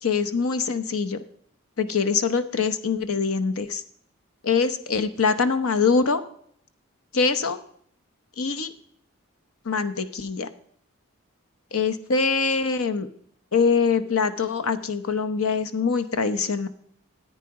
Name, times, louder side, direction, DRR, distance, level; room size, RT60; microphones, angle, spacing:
voice 1, 0.0-1.2 1.8-3.8 4.4-6.2 7.1-7.6 8.4-8.7 9.6-10.5 11.7-13.1 13.5-16.7, left 5 dB, 85° left, 10 dB, 0.9 m, -23 dB
14.0 x 9.0 x 4.8 m, 0.65 s
head